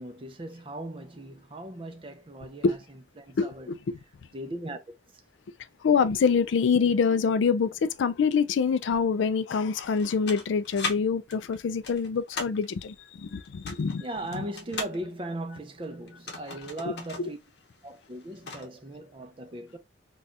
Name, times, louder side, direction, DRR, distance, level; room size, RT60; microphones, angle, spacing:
voice 1, 0.0-2.8 3.2-3.7 4.3-4.8 14.0-17.4 17.8-19.8, right 1 dB, 30° right, 0.5 m, -38 dB
voice 2, 3.4-4.0 5.8-14.0 14.3-14.4 16.9-17.0 17.2-17.3, left 5 dB, 80° left, 0.4 m, -25 dB
sound 1, 9.8-11.0 11.3-12.7 13.5-15.0 16.1-17.3 17.6-17.7 18.1-18.7, left 4 dB, 60° left, 0.8 m, -37 dB
4.0 x 2.4 x 2.4 m
head